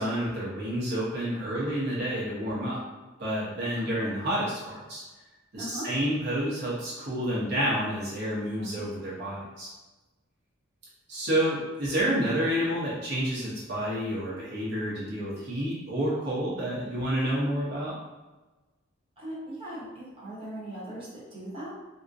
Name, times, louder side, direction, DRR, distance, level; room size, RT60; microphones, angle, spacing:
voice 1, 0.0-2.8 3.2-5.0 5.5-9.7 11.1-17.9, equal, 50° right, -7 dB, 0.8 m, -29 dB
voice 2, 3.6-4.1 5.5-5.9 8.6-8.8 9.2-9.3 19.2-21.7, right 1 dB, 25° right, -8 dB, 0.9 m, -40 dB
3.7 x 2.1 x 2.6 m, 1.1 s
head